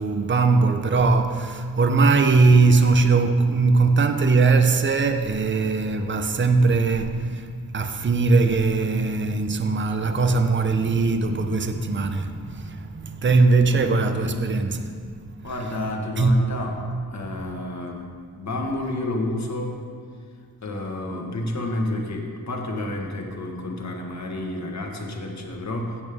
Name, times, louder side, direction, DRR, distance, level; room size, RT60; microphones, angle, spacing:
voice 1, 0.0-7.5 7.7-14.9 15.4-15.8 16.2-16.5, right 3 dB, 30° right, 0.7 m, -20 dB
voice 2, 13.5-14.5 15.4-16.8 17.1-18.1 18.3-19.8 20.6-26.0, left 1 dB, 45° left, 1.6 m, -30 dB
14.5 x 8.5 x 3.6 m
wide cardioid pair, 95°, 37 cm